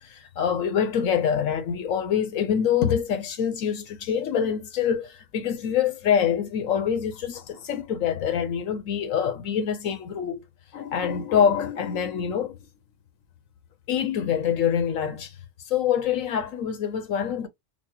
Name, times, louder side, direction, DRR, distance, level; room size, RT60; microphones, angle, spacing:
voice 1, 0.0-10.4 10.7-12.7 13.9-15.3 15.7-17.5, left 8 dB, 85° left, 1.2 m, -25 dB
4.1 x 2.1 x 2.9 m
omnidirectional pair, 1.4 m